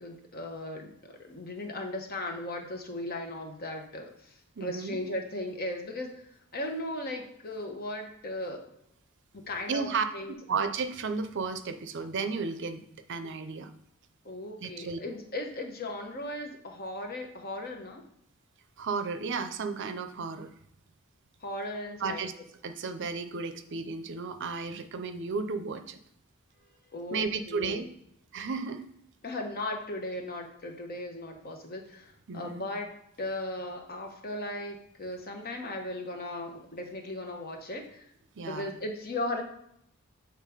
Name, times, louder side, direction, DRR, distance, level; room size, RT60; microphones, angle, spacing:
voice 1, 0.0-8.7 9.3-10.3 14.2-18.0 21.4-22.2 26.9-27.8 29.2-32.9 33.2-38.0 38.4-39.4, left 1 dB, 45° left, 3 dB, 1.1 m, -37 dB
voice 2, 4.6-5.0 9.7-10.0 10.5-12.8 13.1-13.7 14.6-15.0 18.8-20.5 22.0-22.3 22.6-26.0 27.1-27.9 28.3-28.8 32.3-32.6 38.4-38.7, right 4 dB, 55° right, 9 dB, 0.6 m, -33 dB
7.5 x 3.4 x 5.0 m, 0.75 s
head